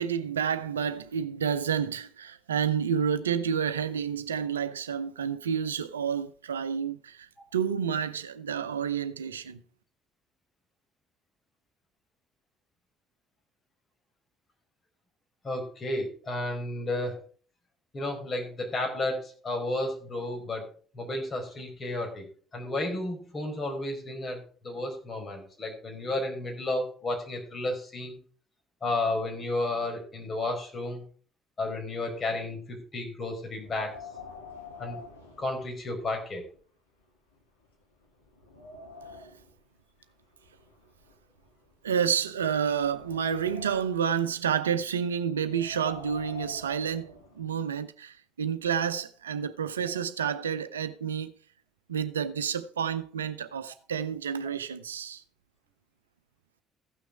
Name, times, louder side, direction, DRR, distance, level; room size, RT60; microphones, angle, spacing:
voice 1, 0.0-9.6 39.2-39.3 41.8-51.3 51.9-55.2, right 7 dB, 85° right, 0.6 m, -30 dB
voice 2, 15.4-17.2 17.9-20.7 20.9-22.2 22.5-28.2 28.8-31.0 31.6-33.9 34.8-35.0 35.4-36.4, left 2 dB, 35° left, 4.7 m, -32 dB
Wind, 33.6-36.2 36.6-36.7 37.3-37.4 37.9-39.5 40.4-41.9 42.5-44.1 45.4-47.5, left 5 dB, 90° left, 1.7 m, -46 dB
15.5 x 6.2 x 4.8 m
figure-of-eight pair, 50°, 0 cm